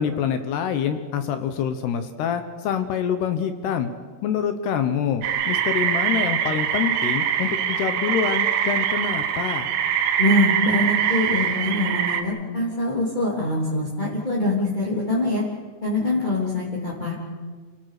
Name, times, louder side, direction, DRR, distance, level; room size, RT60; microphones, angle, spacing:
voice 1, 0.0-3.9 4.2-9.7, left 8 dB, 70° left, 8 dB, 2.9 m, -26 dB
sound 1, 5.2-12.2, right 9 dB, 75° right, 3.5 m, -23 dB
voice 2, 10.2-15.4 15.8-17.1, left 2 dB, 10° left, -5 dB, 2.4 m, -24 dB
29.0 x 18.0 x 6.7 m, 1.5 s
omnidirectional pair, 5.5 m